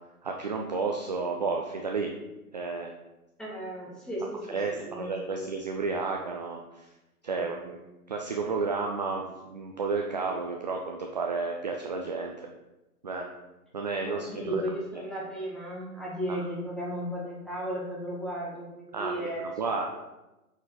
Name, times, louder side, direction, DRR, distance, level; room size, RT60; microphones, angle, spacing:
voice 1, 0.2-2.1 2.5-2.9 4.5-6.9 7.2-7.8 8.1-12.5 13.0-13.3 13.7-14.6 15.0-15.1 18.9-20.0, right 4 dB, 30° right, 1 dB, 0.4 m, -32 dB
voice 2, 3.4-5.5 7.3-7.5 14.0-20.0, equal, ahead, -5 dB, 1.1 m, -35 dB
7.4 x 4.3 x 3.9 m, 1.0 s
figure-of-eight pair, 125°, 46 cm